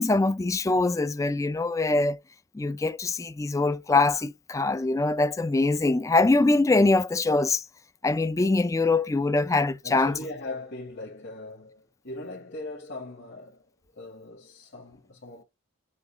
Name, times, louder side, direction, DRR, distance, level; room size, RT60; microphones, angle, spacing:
voice 1, 0.0-2.2 2.5-7.6 8.0-10.1, left 3 dB, 15° left, 0.3 m, -23 dB
voice 2, 9.8-13.6 13.9-15.4, left 2 dB, 60° left, 1.9 m, -40 dB
6.4 x 2.4 x 3.2 m
head